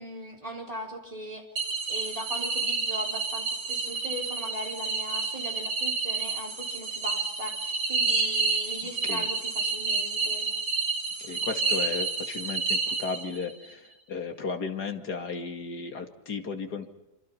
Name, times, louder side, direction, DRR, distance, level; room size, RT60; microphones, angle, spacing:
voice 1, 0.0-1.5 1.9-10.5, equal, 20° right, 0 dB, 4.4 m, -39 dB
sound 1, 1.6-13.5, right 4 dB, 80° right, 3.6 m, -29 dB
voice 2, 8.8-9.3 11.2-16.9, left 5 dB, 70° left, 5 dB, 2.8 m, -35 dB
26.5 x 26.5 x 5.8 m, 0.89 s
omnidirectional pair, 1.8 m